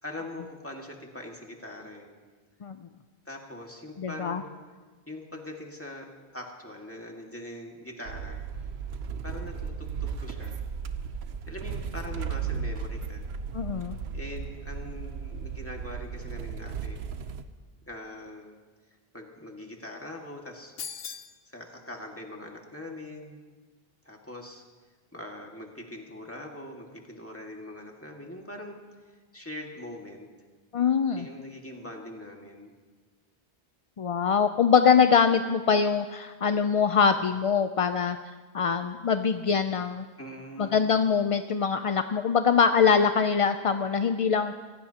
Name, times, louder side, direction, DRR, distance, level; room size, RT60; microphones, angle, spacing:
voice 1, 0.0-2.1 3.3-4.5 5.1-8.4 9.2-10.6 11.5-13.3 14.1-17.0 17.9-18.6 19.1-20.7 21.5-23.4 24.0-24.6 25.1-28.8 29.3-30.3 31.2-32.7 40.2-40.9, left 1 dB, 15° left, 0 dB, 1.9 m, -42 dB
voice 2, 4.0-4.4 13.5-14.0 30.7-31.3 34.0-38.2 38.5-40.1 40.6-44.5, left 6 dB, 50° left, 8 dB, 0.4 m, -23 dB
sound 1, 8.1-17.4, right 6 dB, 85° right, 1.0 m, -35 dB
sound 2, 20.8-21.4, left 7 dB, 70° left, 0.9 m, -38 dB
25.5 x 16.5 x 2.9 m, 1.4 s
omnidirectional pair, 1.0 m